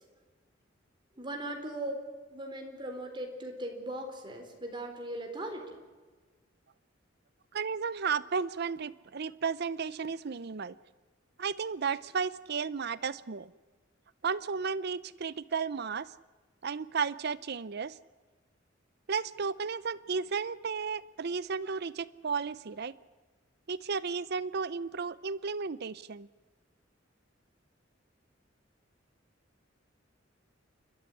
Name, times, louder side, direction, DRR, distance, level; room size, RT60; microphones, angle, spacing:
voice 1, 1.2-2.0 2.3-5.8, right 1 dB, 25° right, 3 dB, 4.1 m, -39 dB
voice 2, 7.5-10.7 11.4-13.5 14.2-16.1 16.6-17.9 19.1-22.9 23.7-26.3, right 5 dB, 55° right, 17 dB, 0.6 m, -33 dB
29.0 x 13.0 x 9.7 m, 1.3 s
head